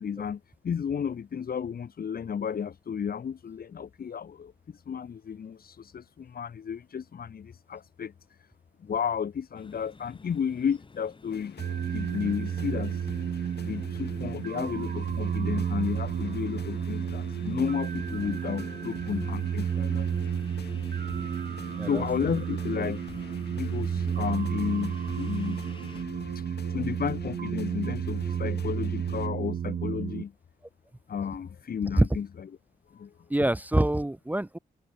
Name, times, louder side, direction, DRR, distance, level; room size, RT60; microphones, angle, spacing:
voice 1, 0.0-8.5 8.8-11.5 11.9-13.1 13.6-20.3 21.8-25.6 26.3-30.3 31.1-32.3 32.9-33.1, left 7 dB, 65° left, 2.0 m, -33 dB
sound 1, 9.5-26.0, left 3 dB, 30° left, 3.8 m, -52 dB
sound 2, 11.3-29.3, left 8 dB, 85° left, 4.2 m, -46 dB
sound 3, 11.6-30.2, right 8 dB, 60° right, 0.9 m, -32 dB
voice 2, 33.3-34.6, right 1 dB, 10° right, 1.0 m, -25 dB
wide cardioid pair, 120°, 17 cm